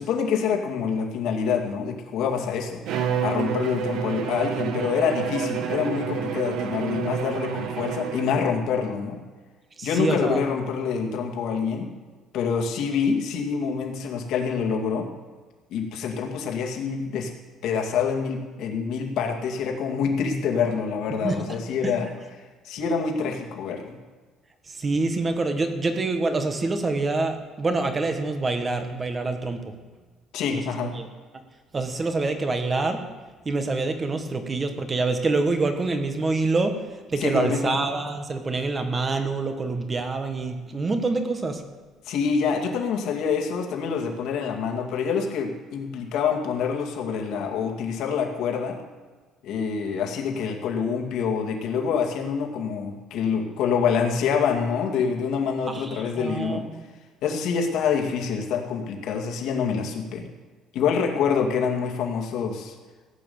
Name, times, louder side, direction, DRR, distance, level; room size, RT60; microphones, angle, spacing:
voice 1, 0.0-9.2 9.8-11.9 12.3-15.1 15.7-17.3 17.6-22.1 22.6-24.0 30.3-31.0 37.2-37.8 42.1-48.8 49.4-56.6 57.2-60.3 60.7-62.7, left 6 dB, 70° left, 2 dB, 2.2 m, -26 dB
Bowed string instrument, 2.9-8.5, right 8 dB, 70° right, 1.4 m, -29 dB
voice 2, 9.8-10.4 21.2-21.4 21.8-21.9 24.7-29.7 30.5-30.6 30.9-31.1 31.7-33.0 33.4-36.8 37.1-41.6 55.7-56.8, right 3 dB, 20° right, 6 dB, 1.4 m, -26 dB
16.5 x 8.6 x 7.1 m, 1.4 s
cardioid pair, 155°, 0 cm